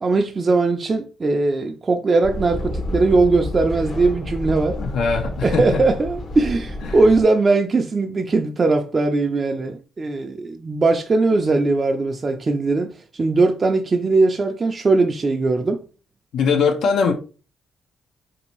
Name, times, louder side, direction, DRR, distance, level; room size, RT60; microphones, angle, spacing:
voice 1, 0.0-4.8 5.4-15.8, right 3 dB, 30° right, 0.3 m, -19 dB
sound 1, 2.2-7.2, left 1 dB, 55° left, 0.9 m, -29 dB
voice 2, 4.8-5.8 6.9-7.0 16.3-17.1, left 5 dB, 75° left, 0.5 m, -21 dB
3.3 x 2.7 x 2.9 m
cardioid pair, 90°, 0 cm